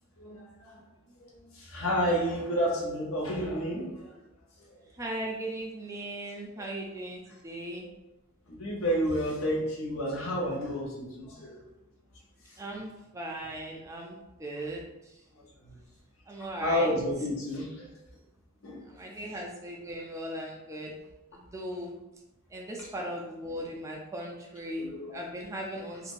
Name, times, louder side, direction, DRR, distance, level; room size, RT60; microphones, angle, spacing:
voice 1, 0.2-0.8 1.6-4.1 7.8-7.9 8.5-11.5 16.6-17.9 18.6-18.8 24.8-25.2, equal, 65° left, -3 dB, 0.8 m, -30 dB
voice 2, 5.0-7.9 12.6-15.2 16.3-16.9 18.9-20.9 21.3-22.0 22.5-26.1, right 1 dB, 15° right, -1 dB, 0.3 m, -38 dB
2.6 x 2.4 x 3.1 m, 0.95 s
head